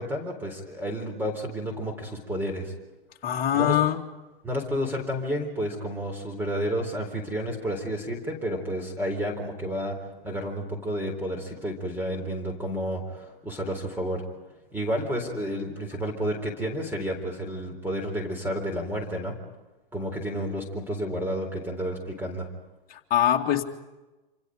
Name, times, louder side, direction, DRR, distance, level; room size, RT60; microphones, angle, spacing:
voice 1, 0.0-2.7 3.5-3.7 4.4-10.0 10.2-14.2 14.7-19.4 19.9-22.5, equal, 5° right, 2 dB, 3.9 m, -31 dB
voice 2, 3.2-4.0 22.9-23.6, left 11 dB, 30° left, 2 dB, 2.4 m, -23 dB
28.0 x 26.5 x 5.2 m, 1.1 s
hypercardioid pair, 120°, 29 cm